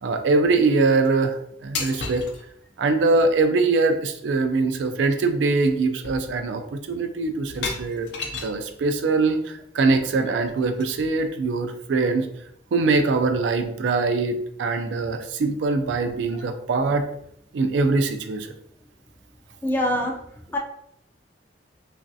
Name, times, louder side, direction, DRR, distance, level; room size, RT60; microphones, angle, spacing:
voice 1, 0.0-2.2 2.8-8.1 8.4-12.3 12.7-17.0 17.5-18.5, right 3 dB, 75° right, 7 dB, 0.3 m, -22 dB
sound 1, 1.7-2.4 4.4-4.5 4.9-5.1 5.5-5.8 6.0-6.6 7.5-8.6 10.3-11.2, left 4 dB, 65° left, 0.5 m, -34 dB
voice 2, 19.6-20.2 20.5-20.6, left 1 dB, 10° left, 0 dB, 0.3 m, -23 dB
3.0 x 2.5 x 2.6 m, 0.72 s
head